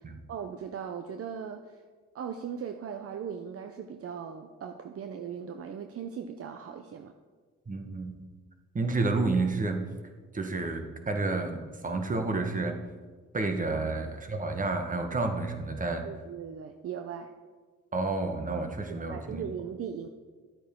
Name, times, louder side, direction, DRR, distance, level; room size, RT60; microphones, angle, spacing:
voice 1, 0.0-1.8 2.1-7.1 13.7-13.9 16.0-17.3 19.1-20.1, right 7 dB, 50° right, 6 dB, 0.7 m, -39 dB
voice 2, 7.7-8.2 8.7-9.9 10.3-12.8 13.3-16.1 17.9-19.4, right 3 dB, 25° right, 5 dB, 1.4 m, -30 dB
12.5 x 8.4 x 3.8 m, 1.4 s
cardioid pair, 90°, 30 cm